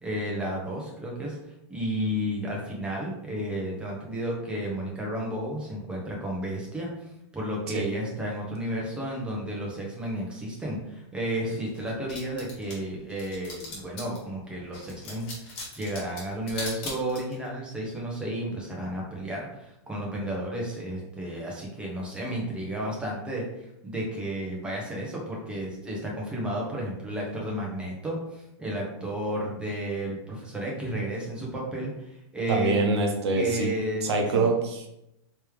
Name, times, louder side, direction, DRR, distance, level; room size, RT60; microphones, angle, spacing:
voice 1, 0.0-1.4 1.7-7.1 7.3-23.4 23.8-32.7 33.3-34.5, right 1 dB, 5° right, -3 dB, 0.9 m, -32 dB
sound 1, 11.7-14.2 14.7-17.5, left 3 dB, 35° left, 1.5 m, -39 dB
voice 2, 32.5-33.7 34.0-34.9, right 3 dB, 70° right, 2 dB, 1.0 m, -25 dB
3.2 x 3.2 x 3.4 m, 0.84 s
hypercardioid pair, 150°, 15 cm